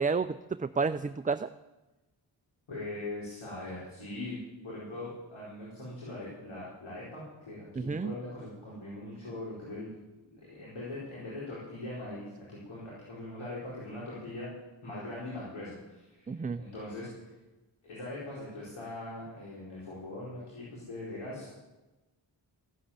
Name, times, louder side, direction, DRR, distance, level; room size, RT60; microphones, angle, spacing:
voice 1, 0.0-1.5 7.8-8.1 16.3-16.6, right 4 dB, 20° right, 11 dB, 0.4 m, -30 dB
voice 2, 2.7-4.4 4.6-9.9 10.3-14.5 14.8-17.1 17.8-21.6, left 2 dB, 85° left, -7 dB, 4.5 m, -41 dB
15.0 x 7.9 x 8.5 m, 1.1 s
cardioid pair, 45°, 47 cm